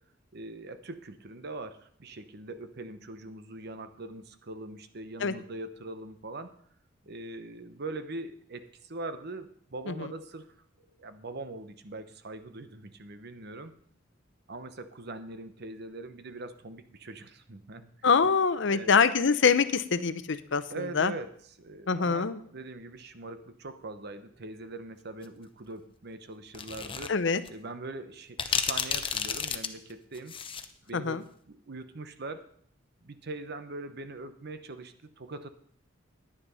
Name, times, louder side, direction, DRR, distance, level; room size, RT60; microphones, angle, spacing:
voice 1, 0.3-6.5 7.1-10.5 11.0-13.8 14.5-17.9 18.7-19.0 20.7-27.1 27.5-30.4 30.9-31.2 31.5-32.4 33.0-35.5, right 2 dB, 60° right, 10 dB, 0.9 m, -42 dB
voice 2, 18.0-20.6 20.9-21.1 21.9-22.4 27.1-27.4 30.9-31.2, left 5 dB, 70° left, 13 dB, 0.7 m, -24 dB
sound 1, 26.5-27.1 27.4-27.5 28.4-30.7, left 6 dB, 30° left, 0.7 m, -31 dB
9.9 x 9.9 x 5.5 m, 0.63 s
head